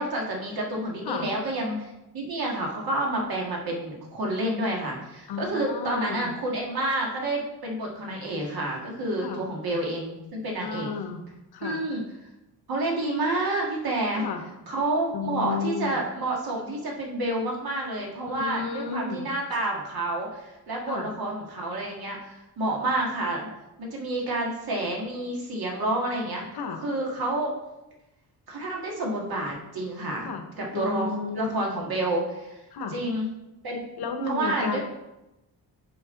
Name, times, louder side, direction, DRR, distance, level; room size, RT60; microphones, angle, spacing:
voice 1, 0.0-10.9 11.6-12.0 12.7-14.3 14.7-23.5 23.8-26.4 26.8-27.5 28.5-30.3 30.6-32.6 32.9-33.3 33.6-33.9 34.3-34.8, right 1 dB, 65° right, -1 dB, 1.9 m, -29 dB
voice 2, 5.3-6.3 9.2-9.5 10.6-11.2 11.5-11.8 14.1-14.4 15.1-16.0 18.3-19.3 20.9-21.1 26.5-26.8 30.2-30.4 30.7-31.5 32.7-33.0 34.0-34.8, left 5 dB, 75° left, 6 dB, 1.0 m, -32 dB
7.9 x 5.3 x 3.8 m, 0.95 s
wide cardioid pair, 130°, 39 cm